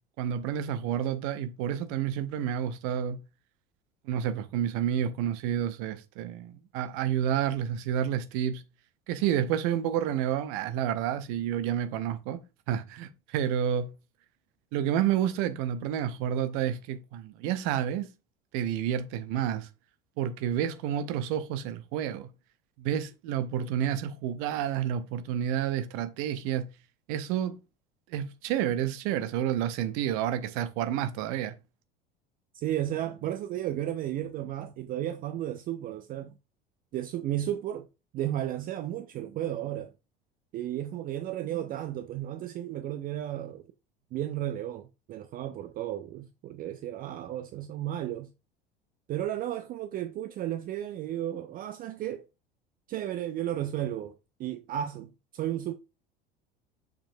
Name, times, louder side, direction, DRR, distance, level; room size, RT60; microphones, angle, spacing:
voice 1, 0.2-3.2 4.0-8.6 9.1-12.4 12.7-13.9 14.7-18.1 18.5-19.7 20.2-22.3 22.8-26.7 27.1-27.6 28.1-31.5, right 10 dB, 50° right, 0.8 m, -29 dB
voice 2, 32.5-36.3 36.9-37.9 38.1-39.9 40.5-43.6 44.1-48.3 49.1-52.3 52.9-55.7, right 12 dB, 30° right, 0.4 m, -33 dB
6.9 x 5.3 x 2.6 m
figure-of-eight pair, 70°, 29 cm